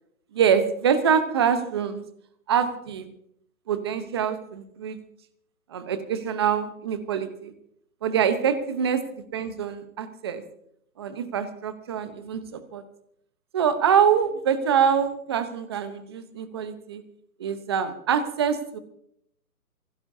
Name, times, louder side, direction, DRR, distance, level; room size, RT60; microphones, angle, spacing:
voice 1, 0.3-2.0 2.5-3.1 3.7-5.0 5.7-7.5 8.0-9.0 9.3-10.4 11.0-12.8 13.5-17.0 17.4-18.8, right 7 dB, 15° right, 11 dB, 0.9 m, -25 dB
25.5 x 17.0 x 2.7 m, 0.71 s
hypercardioid pair, 160°, 46 cm